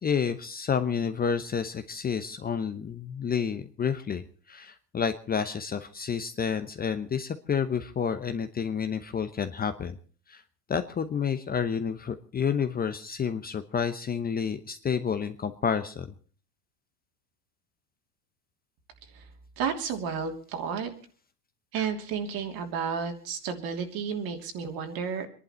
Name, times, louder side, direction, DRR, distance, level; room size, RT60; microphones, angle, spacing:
voice 1, 0.0-10.0 10.3-10.4 10.7-16.1, left 7 dB, 20° left, 9 dB, 0.9 m, -30 dB
voice 2, 19.6-20.9 21.7-25.3, right 6 dB, 50° right, 5 dB, 3.0 m, -32 dB
25.0 x 11.0 x 4.4 m, 0.41 s
hypercardioid pair, 100°, 46 cm